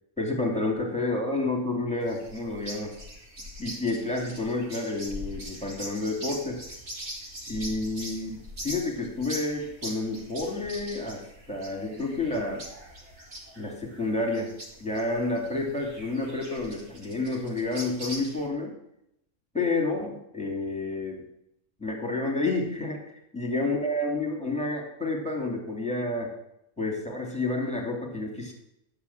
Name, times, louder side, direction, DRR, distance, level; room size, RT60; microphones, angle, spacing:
voice 1, 0.2-2.9 3.6-6.6 7.5-11.2 11.5-12.6 13.6-14.5 14.8-18.7 19.5-21.3 21.8-23.0 23.3-26.3 26.8-28.5, left 2 dB, 5° left, -1 dB, 2.5 m, -29 dB
sound 1, 2.0-18.5, equal, 55° right, 2.5 m, -42 dB
10.5 x 7.3 x 7.2 m, 0.80 s
omnidirectional pair, 1.4 m